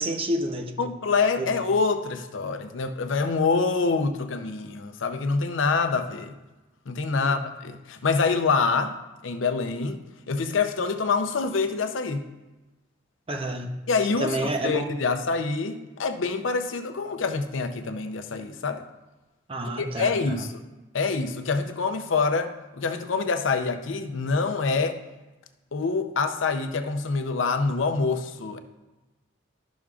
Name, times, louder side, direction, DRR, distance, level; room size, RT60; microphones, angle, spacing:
voice 1, 0.0-0.7 1.4-1.5 7.1-7.4 13.3-13.7 14.2-14.9 19.5-20.1, right 1 dB, 30° right, 4 dB, 0.7 m, -29 dB
voice 2, 0.8-6.4 6.9-9.0 9.2-10.0 10.3-12.3 13.9-18.8 19.8-20.6 20.9-25.0 25.7-28.6, left 4 dB, 90° left, 8 dB, 0.6 m, -26 dB
12.5 x 6.1 x 2.4 m, 1.1 s
head